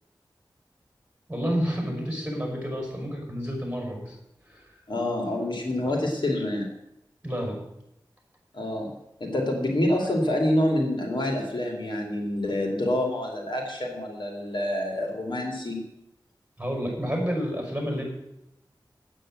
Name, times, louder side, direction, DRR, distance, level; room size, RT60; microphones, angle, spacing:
voice 1, 1.3-4.2 4.4-4.7 5.8-6.0 7.2-7.6 16.6-18.0, equal, 15° right, 0 dB, 5.7 m, -30 dB
voice 2, 4.9-6.7 8.5-8.9 9.2-15.8, left 1 dB, 70° left, 1 dB, 2.6 m, -27 dB
9.0 x 8.8 x 7.6 m, 0.83 s
wide cardioid pair, 55°, 8 cm